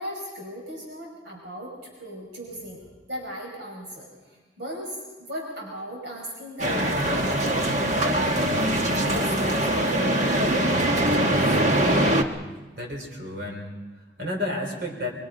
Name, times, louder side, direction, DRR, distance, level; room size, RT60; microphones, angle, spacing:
voice 1, 0.0-2.8 3.1-8.8 9.0-10.4, equal, 75° right, -1 dB, 5.6 m, -38 dB
sound 1, 6.6-12.2, right 1 dB, 40° right, 1.5 m, -22 dB
voice 2, 12.7-15.1, left 1 dB, 55° right, 1 dB, 4.5 m, -32 dB
27.0 x 23.5 x 5.3 m, 1.2 s
head